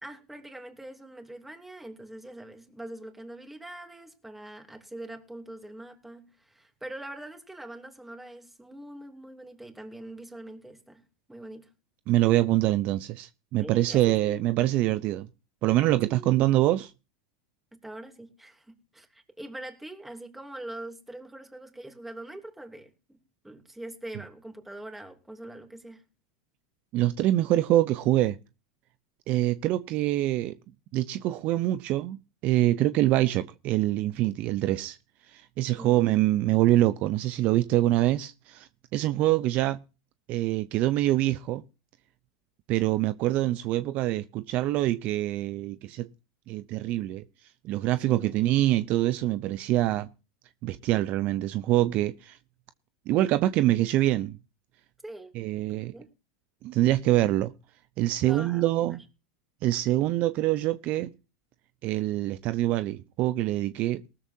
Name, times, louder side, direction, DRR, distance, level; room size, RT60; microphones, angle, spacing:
voice 1, 0.0-11.0 11.3-11.7 13.6-14.5 16.1-16.4 17.7-23.2 23.4-26.0 35.7-35.9 48.0-48.3 55.0-55.3 55.7-56.1 58.2-59.0, right 1 dB, 5° right, 3.0 m, -43 dB
voice 2, 12.1-15.3 15.6-16.9 26.9-28.4 29.3-30.6 30.9-32.2 32.4-35.0 35.3-39.8 40.3-41.6 42.7-46.1 46.5-47.2 47.6-50.1 50.6-52.4 53.1-54.4 55.3-55.9 56.6-57.5 58.0-59.0 59.6-61.1 61.8-64.0, right 15 dB, 50° right, 0.7 m, -25 dB
19.0 x 13.5 x 2.8 m
supercardioid pair, 115°, 3 cm